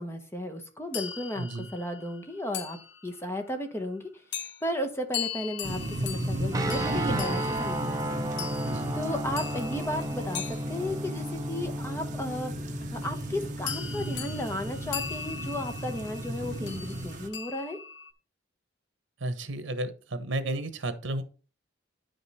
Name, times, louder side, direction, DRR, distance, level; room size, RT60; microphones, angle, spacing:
voice 1, 0.0-4.0 4.4-8.5 8.9-17.8, left 1 dB, 15° left, 6 dB, 1.0 m, -34 dB
sound 1, 0.9-3.4 4.3-4.6 5.1-11.5 13.0-13.3 13.7-18.1, left 8 dB, 65° left, 0.7 m, -40 dB
sound 2, 5.6-17.3, right 1 dB, 40° right, 1.1 m, -36 dB
sound 3, 6.5-16.9, right 1 dB, 20° right, 0.7 m, -35 dB
voice 2, 8.6-8.9 19.2-21.2, right 1 dB, 80° right, 10 dB, 1.0 m, -32 dB
9.3 x 5.2 x 4.2 m, 0.37 s
head